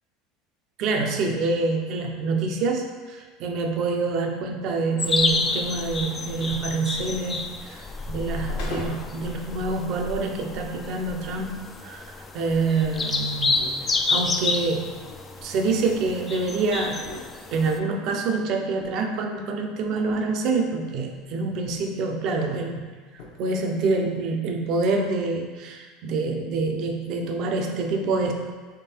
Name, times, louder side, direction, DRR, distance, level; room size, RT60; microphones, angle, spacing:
voice 1, 0.8-12.0 12.3-13.7 14.1-14.9 15.4-17.0 17.5-22.9 23.4-28.3, right 3 dB, 50° right, 3 dB, 0.6 m, -26 dB
sound 1, 5.0-17.8, left 3 dB, 20° left, 0.3 m, -30 dB
sound 2, 5.8-9.3 9.7-9.8 10.4-10.5 11.0-16.4 16.7-18.1 18.5-20.5 20.8-22.0 22.3-22.4 22.7-22.8 23.1-23.7, left 2 dB, 70° left, 0.8 m, -44 dB
3.6 x 3.2 x 4.4 m, 1.4 s
supercardioid pair, 140°, 0 cm